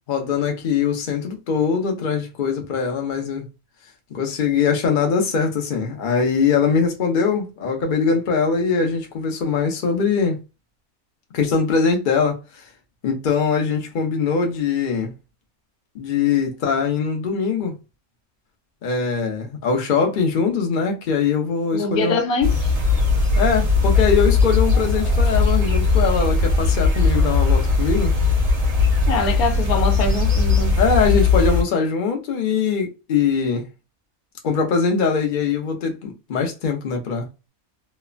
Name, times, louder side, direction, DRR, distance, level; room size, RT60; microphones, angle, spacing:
voice 1, 0.1-3.5 4.1-10.4 11.3-12.6 13.0-15.1 15.9-17.8 18.8-22.2 23.3-28.1 30.8-33.7 34.4-37.3, left 5 dB, 45° left, 0.8 m, -22 dB
voice 2, 21.7-22.6 29.1-30.8, left 3 dB, 85° left, 1.2 m, -23 dB
sound 1, 22.4-31.6, left 3 dB, 35° right, 0.7 m, -18 dB
3.1 x 2.0 x 2.4 m
omnidirectional pair, 1.5 m